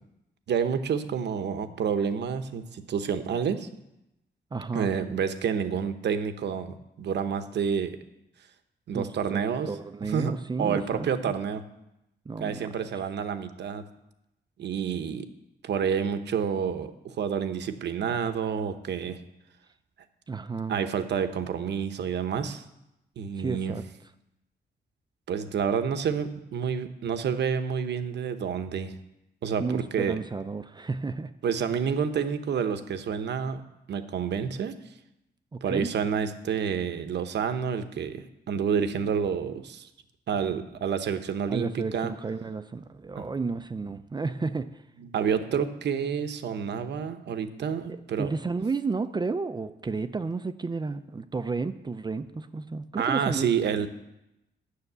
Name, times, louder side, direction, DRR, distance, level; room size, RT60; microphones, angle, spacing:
voice 1, 0.5-3.7 4.7-8.0 8.9-9.7 10.0-11.6 12.4-13.8 14.6-15.3 15.6-19.2 20.7-22.6 23.2-23.8 25.3-28.9 29.4-30.2 31.4-33.6 33.9-34.7 35.6-39.9 40.3-42.1 43.2-43.3 45.0-48.3 53.0-53.9, right 7 dB, 70° right, 9 dB, 0.9 m, -29 dB
voice 2, 4.5-4.9 8.9-11.3 12.3-12.7 20.3-20.8 23.4-23.8 29.6-31.3 35.5-35.9 41.5-44.7 47.9-53.5, right 4 dB, 25° right, 10 dB, 0.5 m, -32 dB
9.8 x 6.5 x 8.0 m, 0.88 s
cardioid pair, 105°, 18 cm